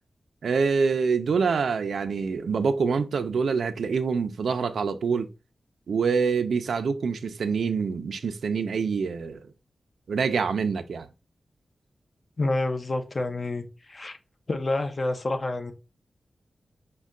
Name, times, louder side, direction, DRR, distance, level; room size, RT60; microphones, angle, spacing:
voice 1, 0.4-5.3 5.9-9.4 10.1-11.1, right 5 dB, 85° right, 0.4 m, -25 dB
voice 2, 12.4-14.2 14.5-15.7, left 2 dB, 35° left, 0.6 m, -28 dB
5.3 x 2.2 x 3.6 m
wide cardioid pair, 150°, 0 cm